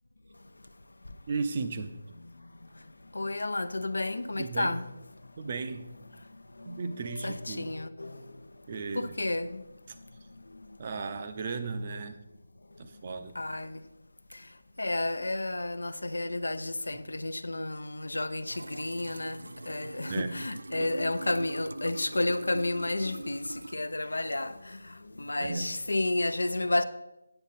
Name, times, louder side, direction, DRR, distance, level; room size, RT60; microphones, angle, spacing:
voice 1, 1.3-2.0 4.4-4.7 5.4-5.9 6.6-7.7 8.7-9.1 10.8-12.2 12.8-13.4 20.1-20.4 20.8-20.9 25.4-25.7, right 4 dB, 40° right, 0.7 m, -35 dB
voice 2, 3.1-4.9 6.6-8.4 8.9-9.6 10.5-10.7 13.3-13.8 14.3-14.4 14.8-26.8, left 2 dB, 80° left, 0.6 m, -32 dB
sound 1, 18.5-23.8, right 1 dB, 85° right, 0.3 m, -42 dB
8.9 x 7.1 x 4.1 m
figure-of-eight pair, 160°, 0 cm